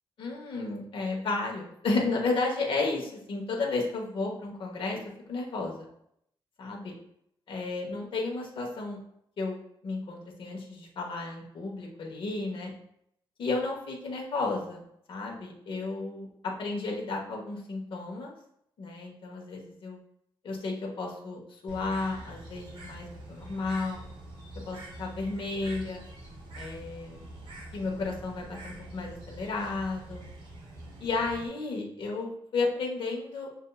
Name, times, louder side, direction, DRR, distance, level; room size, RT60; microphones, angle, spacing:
voice 1, 0.2-5.0 5.3-5.9 6.6-6.9 7.5-9.0 9.4-12.7 13.4-14.8 15.1-18.3 18.8-20.0 20.4-24.0 24.7-26.0 26.5-27.2 27.7-30.2 31.0-33.5, left 3 dB, 65° left, 0 dB, 1.0 m, -33 dB
Bird, 21.7-31.5, right 1 dB, 55° right, 1.7 m, -45 dB
6.5 x 2.7 x 2.3 m, 0.72 s
wide cardioid pair, 135°, 9 cm